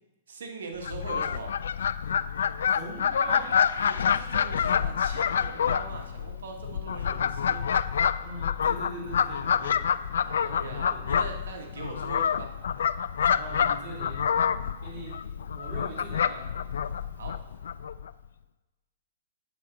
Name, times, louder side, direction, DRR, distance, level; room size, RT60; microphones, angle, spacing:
voice 1, 0.3-1.5 3.7-7.6 10.2-12.5 17.1-17.4, right 4 dB, 85° right, 2 dB, 1.3 m, -41 dB
Fowl, 0.8-18.1, left 7 dB, 80° left, 0.3 m, -27 dB
voice 2, 2.7-3.6 8.2-9.9 10.4-11.1 13.3-14.2 14.8-16.5, right 2 dB, 40° right, -7 dB, 3.4 m, -41 dB
8.2 x 4.9 x 6.6 m, 1.1 s
hypercardioid pair, 180°, 0 cm